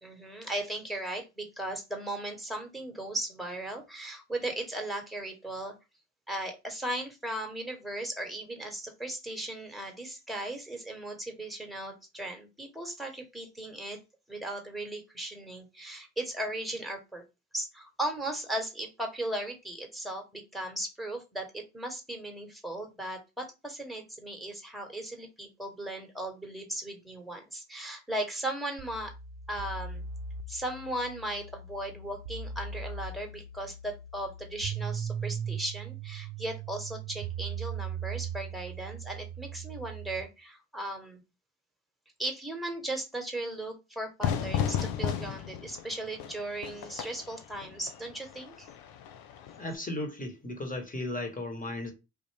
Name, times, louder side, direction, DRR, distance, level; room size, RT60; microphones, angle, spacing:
voice 1, 0.0-5.7 6.3-14.0 14.3-17.2 17.5-29.1 29.5-30.0 30.5-41.2 42.2-48.7, right 1 dB, ahead, 1.2 m, -37 dB
sound 1, 28.8-40.2, right 6 dB, 65° right, 0.6 m, -39 dB
Fire / Fireworks, 44.2-49.7, left 9 dB, 75° left, 0.6 m, -34 dB
voice 2, 49.6-51.9, left 1 dB, 20° left, 1.2 m, -35 dB
3.3 x 2.5 x 3.2 m
hypercardioid pair, 50°, 37 cm